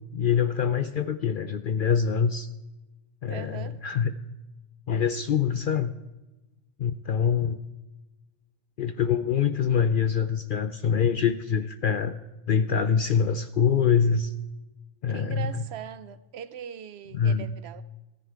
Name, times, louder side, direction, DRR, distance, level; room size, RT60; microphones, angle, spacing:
voice 1, 0.1-2.5 3.2-4.1 4.9-5.9 6.8-7.6 8.8-12.1 12.5-14.3 15.0-15.5 17.1-17.5, left 7 dB, 60° left, 0.5 m, -24 dB
voice 2, 3.3-3.8 15.1-17.8, right 8 dB, 65° right, 0.8 m, -40 dB
14.5 x 10.0 x 4.6 m
omnidirectional pair, 1.3 m